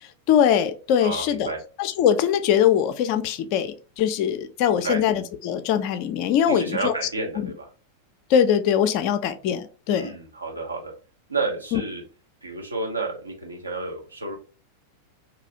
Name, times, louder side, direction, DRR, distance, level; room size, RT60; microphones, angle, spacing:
voice 1, 0.3-1.5 1.8-6.9 8.3-10.1 11.7-11.8, left 9 dB, 45° left, 0.4 m, -22 dB
voice 2, 1.0-1.6 4.7-5.0 6.4-7.7 9.9-10.9 11.3-12.0 12.4-14.4, right 3 dB, 80° right, 0.8 m, -30 dB
2.7 x 2.3 x 2.7 m
figure-of-eight pair, 90°, 0 cm